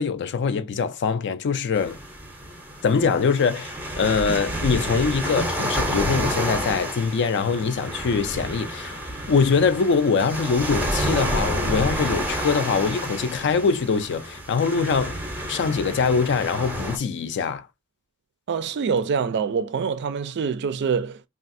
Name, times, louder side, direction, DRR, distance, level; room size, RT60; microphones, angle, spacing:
voice 1, 0.0-2.0 2.8-15.2 15.5-17.7, left 5 dB, 55° left, 0.4 m, -23 dB
sound 1, 1.7-17.0, right 1 dB, 10° right, 0.6 m, -29 dB
voice 2, 18.5-21.3, right 6 dB, 55° right, 0.4 m, -25 dB
3.3 x 2.4 x 2.5 m
head